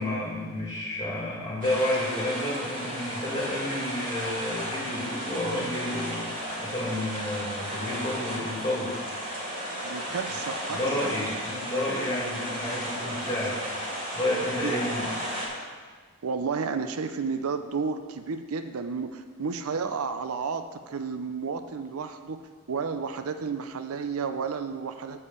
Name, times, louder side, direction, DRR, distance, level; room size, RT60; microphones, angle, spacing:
voice 1, 0.0-8.9 10.3-10.4 10.7-13.6 14.1-15.1, left 1 dB, 15° left, -5 dB, 2.4 m, -30 dB
sound 1, 1.6-15.5, equal, 35° right, 2.3 m, -34 dB
voice 2, 9.8-11.1 14.6-14.7 16.2-22.4 22.7-25.2, right 5 dB, 75° right, 9 dB, 0.5 m, -32 dB
8.4 x 4.7 x 6.9 m, 1.5 s
head